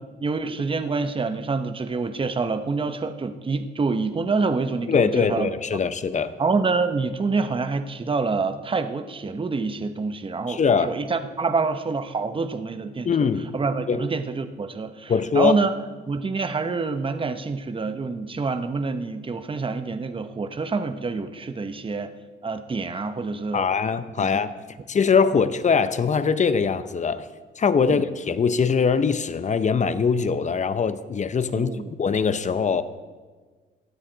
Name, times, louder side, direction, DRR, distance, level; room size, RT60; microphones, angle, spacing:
voice 1, 0.2-5.5 6.4-13.3 13.5-15.7 16.1-22.1 22.4-23.7 24.2-24.4 27.9-28.0 31.5-31.9, right 4 dB, 25° right, 10 dB, 0.9 m, -27 dB
voice 2, 4.9-6.3 10.5-10.9 13.0-13.5 13.9-14.1 15.1-15.6 23.5-24.5 24.9-27.3 27.6-31.7 32.0-32.8, left 5 dB, 35° left, 12 dB, 0.8 m, -22 dB
17.0 x 12.5 x 4.0 m, 1.4 s
cardioid pair, 90°, 20 cm